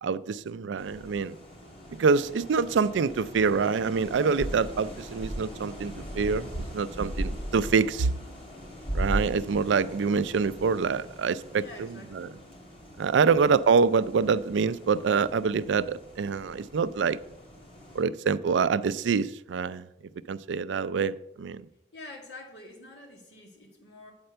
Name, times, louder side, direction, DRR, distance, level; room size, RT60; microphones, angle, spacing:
voice 1, 0.0-1.4 2.0-8.2 8.9-11.9 12.1-12.3 13.0-17.2 17.9-19.9 20.3-21.7, right 5 dB, 90° right, 0.4 m, -26 dB
sound 1, 0.8-18.0, equal, 30° left, 2.8 m, -39 dB
voice 2, 11.5-12.3 21.9-24.1, left 2 dB, 75° left, 2.1 m, -47 dB
8.8 x 4.4 x 6.7 m
head